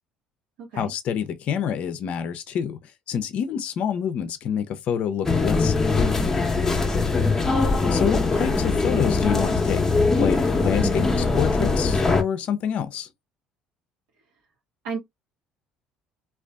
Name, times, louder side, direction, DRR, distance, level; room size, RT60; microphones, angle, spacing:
voice 1, 0.7-6.3 7.9-13.1, left 8 dB, 60° left, 0.4 m, -27 dB
sound 1, 5.2-12.2, left 3 dB, 20° left, 0.7 m, -21 dB
voice 2, 7.3-7.6 14.8-15.0, right 5 dB, 80° right, 1.0 m, -33 dB
2.4 x 2.3 x 2.2 m
supercardioid pair, 80°, 3 cm